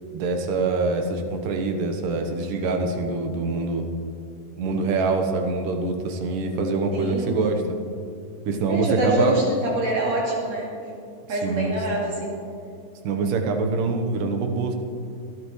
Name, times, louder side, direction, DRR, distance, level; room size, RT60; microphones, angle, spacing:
voice 1, 0.1-3.9 4.6-7.8 8.5-9.4 11.3-11.7 13.0-14.8, right 3 dB, 75° right, 4 dB, 2.7 m, -24 dB
voice 2, 6.9-7.7 8.7-10.7 11.3-12.3, right 1 dB, 55° right, -3 dB, 3.1 m, -25 dB
26.5 x 10.0 x 3.2 m, 2.4 s
omnidirectional pair, 3.9 m